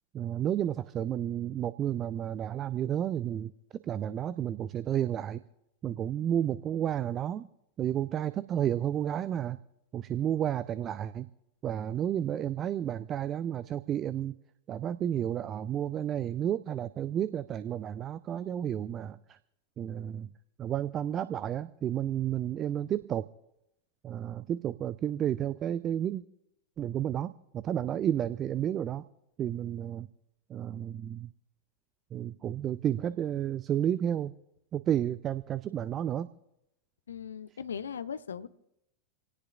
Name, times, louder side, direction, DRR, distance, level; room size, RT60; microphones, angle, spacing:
voice 1, 0.1-3.5 3.9-5.4 5.8-7.5 7.8-9.6 9.9-11.3 11.6-14.4 14.7-19.4 19.8-20.3 20.6-23.3 24.0-26.2 26.8-29.0 29.4-30.1 30.5-31.3 32.1-34.3 34.7-36.3, right 10 dB, 30° right, 16 dB, 0.4 m, -31 dB
voice 2, 37.1-38.5, left 7 dB, 70° left, 13 dB, 0.7 m, -38 dB
27.0 x 18.0 x 2.4 m, 0.85 s
figure-of-eight pair, 90°, 0 cm